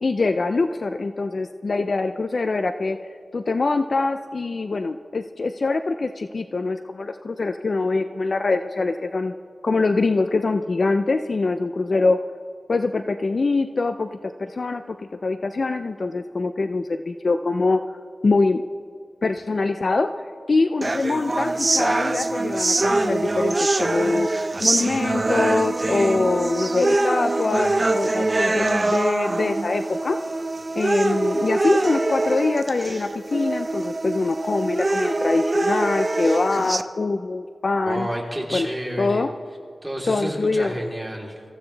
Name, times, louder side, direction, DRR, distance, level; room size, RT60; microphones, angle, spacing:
voice 1, 0.0-3.0 3.3-9.3 9.6-12.2 12.7-15.0 15.2-17.8 18.2-18.6 19.2-20.1 20.5-24.3 24.6-30.2 30.8-38.1 38.5-38.7 39.0-39.3 40.1-40.7, left 3 dB, 55° left, 8 dB, 0.6 m, -23 dB
sound 1, 20.8-36.8, right 2 dB, 35° right, 0.7 m, -24 dB
voice 2, 37.9-39.3 39.8-41.4, right 1 dB, 10° right, -2 dB, 3.6 m, -30 dB
26.0 x 15.0 x 3.4 m, 2.2 s
wide cardioid pair, 80°, 0 cm